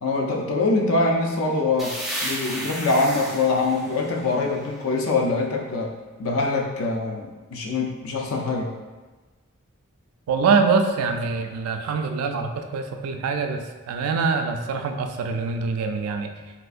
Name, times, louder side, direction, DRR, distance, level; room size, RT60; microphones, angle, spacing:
voice 1, 0.0-5.9 6.2-8.7, left 3 dB, 70° left, 1 dB, 0.4 m, -24 dB
sound 1, 1.8-5.4, right 1 dB, ahead, 0.3 m, -34 dB
voice 2, 10.3-16.3, right 4 dB, 90° right, 6 dB, 0.3 m, -24 dB
3.5 x 2.4 x 2.4 m, 1.3 s
head